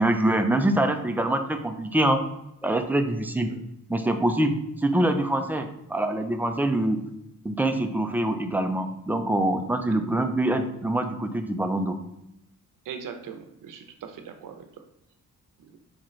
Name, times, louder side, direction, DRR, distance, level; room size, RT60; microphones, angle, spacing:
voice 1, 0.0-2.2 2.6-3.5 3.9-7.0 7.4-12.0, right 1 dB, 5° right, 6 dB, 0.4 m, -24 dB
voice 2, 12.9-14.7 15.6-15.7, right 7 dB, 75° right, 7 dB, 0.7 m, -40 dB
4.3 x 3.7 x 3.1 m, 0.86 s
cardioid pair, 95°, 33 cm